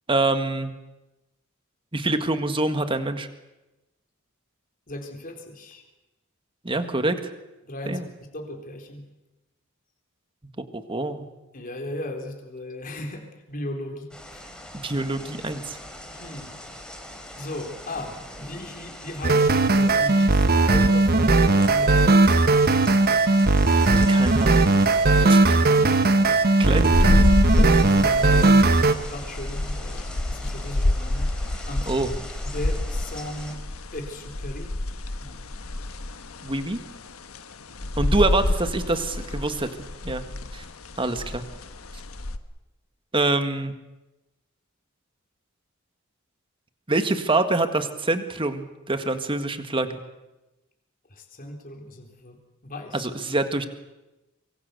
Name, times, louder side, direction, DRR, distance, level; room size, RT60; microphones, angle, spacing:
voice 1, 0.1-0.7 1.9-3.3 6.6-7.2 7.9-8.1 10.7-11.2 14.8-15.8 24.1-24.6 25.2-25.6 26.6-27.2 31.9-32.1 36.4-36.8 38.0-39.7 40.0-40.2 40.5-40.6 41.0-41.4 43.1-43.7 46.9-50.0 52.9-53.7, right 2 dB, 25° right, 8 dB, 1.7 m, -25 dB
voice 2, 4.9-5.8 7.6-9.0 11.5-14.4 16.1-16.6 17.4-22.4 25.8-26.0 26.7-26.9 27.5-30.0 30.3-31.3 31.7-31.9 32.4-33.6 33.9-34.7 35.2-35.5 51.1-52.4 52.6-53.1, left 1 dB, 40° left, 3 dB, 3.9 m, -36 dB
sound 1, 14.1-33.6, left 1 dB, 5° left, 3.6 m, -41 dB
sound 2, 19.2-28.9, right 2 dB, 45° right, 1.1 m, -18 dB
sound 3, 26.9-42.4, left 1 dB, 80° left, 1.3 m, -27 dB
24.5 x 23.5 x 6.9 m, 1.0 s
head